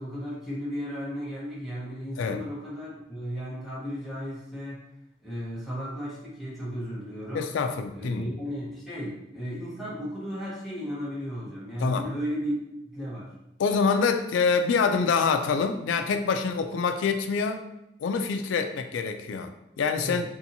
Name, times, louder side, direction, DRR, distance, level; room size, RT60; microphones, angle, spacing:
voice 1, 0.0-4.8 5.2-7.5 7.9-13.3 20.0-20.2, equal, ahead, -8 dB, 1.0 m, -35 dB
voice 2, 7.3-8.3 11.8-12.0 13.6-17.6 18.0-20.2, left 5 dB, 85° left, 7 dB, 0.3 m, -26 dB
2.7 x 2.6 x 2.7 m, 0.88 s
head